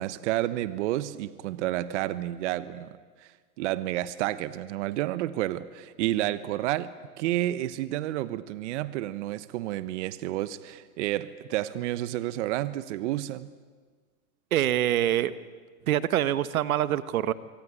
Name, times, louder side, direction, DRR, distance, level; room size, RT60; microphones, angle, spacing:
voice 1, 0.0-13.5, right 14 dB, 50° right, 14 dB, 1.2 m, -30 dB
voice 2, 14.5-15.3 15.9-17.3, right 12 dB, 70° right, 14 dB, 1.3 m, -25 dB
25.5 x 23.5 x 9.8 m, 1.5 s
hypercardioid pair, 135°, 44 cm